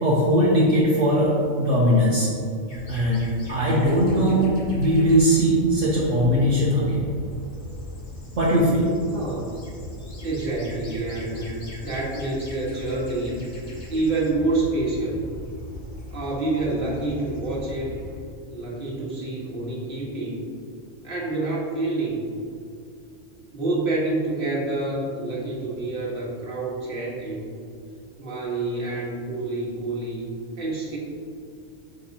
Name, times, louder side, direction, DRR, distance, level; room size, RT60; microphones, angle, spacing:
voice 1, 0.0-2.3 2.9-7.0 8.4-8.9, equal, 65° right, -6 dB, 1.5 m, -20 dB
sound 1, 2.7-18.2, left 1 dB, 35° left, 1.5 m, -39 dB
voice 2, 9.1-9.6 10.2-13.4 13.9-15.3 16.1-17.9 18.5-20.5 21.0-22.3 23.5-27.5 28.2-31.0, right 2 dB, 40° right, -5 dB, 1.8 m, -28 dB
9.1 x 5.8 x 2.9 m, 2.5 s
omnidirectional pair, 1.4 m